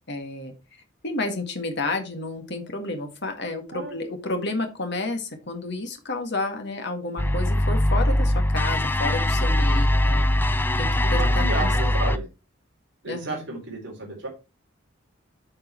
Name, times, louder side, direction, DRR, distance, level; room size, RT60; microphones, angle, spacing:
voice 1, 0.1-0.5 1.0-10.3 10.8-11.7 13.1-13.4, left 2 dB, 55° left, 5 dB, 1.9 m, -31 dB
sound 1, 7.2-12.2, left 1 dB, 10° left, 0.4 m, -21 dB
voice 2, 11.0-12.3 13.0-14.3, right 2 dB, 60° right, -2 dB, 3.9 m, -32 dB
9.7 x 5.3 x 4.5 m, 0.28 s
head